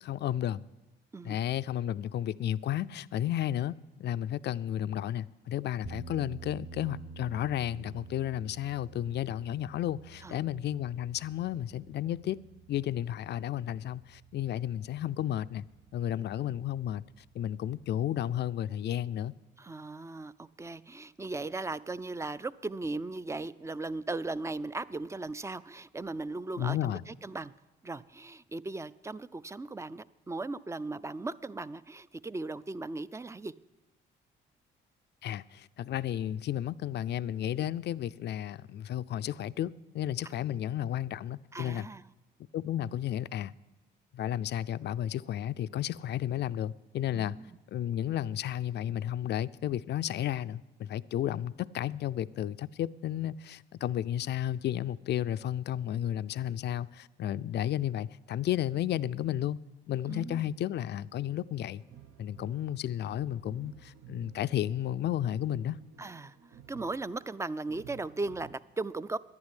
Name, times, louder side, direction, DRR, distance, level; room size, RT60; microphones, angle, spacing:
voice 1, 0.0-0.6 1.2-3.7 4.0-12.4 12.7-15.6 15.9-17.0 17.3-19.3 26.6-27.0 35.2-41.9 42.5-43.5 44.1-47.4 47.7-59.6 59.9-61.8 62.2-65.8, left 11 dB, 60° left, 0.4 m, -33 dB
sound 1, 5.8-18.2, right 5 dB, 40° right, 0.9 m, -51 dB
voice 2, 19.6-27.5 27.8-33.5 37.6-37.7 41.5-42.1 47.1-47.6 60.1-60.5 66.0-66.3 66.7-69.2, right 3 dB, 15° right, 0.4 m, -37 dB
sound 2, 61.7-68.5, right 10 dB, 75° right, 1.1 m, -54 dB
10.5 x 9.7 x 10.0 m
cardioid pair, 90°, 20 cm